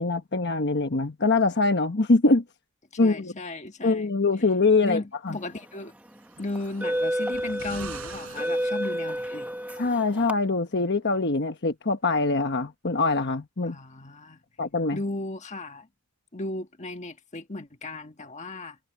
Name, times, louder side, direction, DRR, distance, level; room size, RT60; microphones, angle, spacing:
voice 1, 0.0-2.4 3.0-3.3 3.8-5.0 5.3-5.4 9.8-13.8 14.6-15.0, left 3 dB, 55° left, 1.2 m, -23 dB
voice 2, 3.0-4.2 4.8-5.9 6.4-9.5 13.7-14.4 14.9-15.9 16.3-18.8, left 2 dB, 35° left, 1.5 m, -35 dB
sound 1, 5.5-5.8 6.5-10.3, equal, 5° right, 1.4 m, -30 dB
sound 2, 6.2-9.5 10.5-10.6, right 5 dB, 80° right, 6.0 m, -45 dB
head